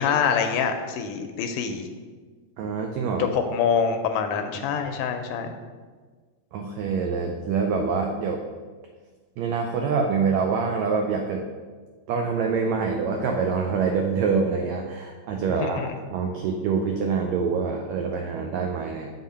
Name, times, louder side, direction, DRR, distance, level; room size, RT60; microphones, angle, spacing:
voice 1, 0.0-1.9 3.2-5.6 15.6-15.9, left 6 dB, 80° left, 6 dB, 1.9 m, -25 dB
voice 2, 2.6-3.3 6.5-8.4 9.4-11.4 12.1-15.8 16.1-19.1, right 5 dB, 90° right, 3 dB, 1.5 m, -25 dB
7.2 x 3.8 x 5.6 m, 1.5 s
omnidirectional pair, 3.8 m